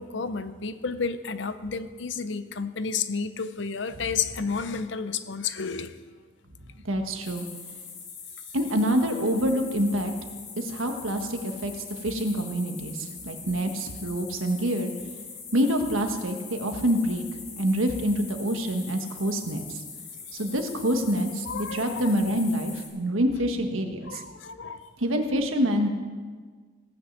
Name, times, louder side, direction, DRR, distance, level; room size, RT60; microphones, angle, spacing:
voice 1, 0.0-6.0 20.3-20.4 21.5-22.1 24.1-24.9, left 5 dB, 65° left, 12 dB, 0.7 m, -31 dB
voice 2, 6.8-7.4 8.5-10.1 10.6-11.7 12.0-14.9 15.5-17.2 17.5-19.8 20.3-24.2 25.0-25.9, equal, 90° right, 5 dB, 1.4 m, -26 dB
sound 1, 7.2-22.9, left 5 dB, 85° left, 4.5 m, -42 dB
16.5 x 6.3 x 7.4 m, 1.5 s
head